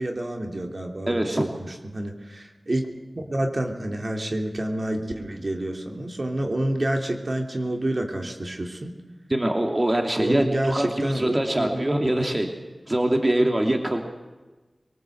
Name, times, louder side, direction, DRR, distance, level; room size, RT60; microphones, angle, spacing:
voice 1, 0.0-2.9 3.2-8.9 10.2-11.8, right 1 dB, 55° right, 2 dB, 3.0 m, -28 dB
voice 2, 1.1-1.4 9.3-12.5 12.9-14.0, right 1 dB, 35° right, 3 dB, 2.7 m, -23 dB
23.5 x 19.0 x 8.0 m, 1.2 s
wide cardioid pair, 45°, 0 cm